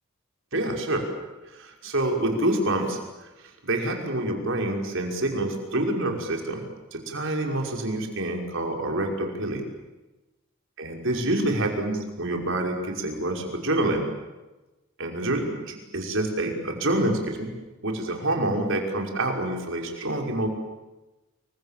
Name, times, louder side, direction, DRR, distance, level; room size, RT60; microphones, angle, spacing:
voice 1, 0.5-1.0 1.5-3.3 3.6-9.6 10.8-14.0 15.0-17.5 17.8-20.5, right 1 dB, 65° right, 2 dB, 5.7 m, -27 dB
29.5 x 24.0 x 7.5 m, 1.1 s
head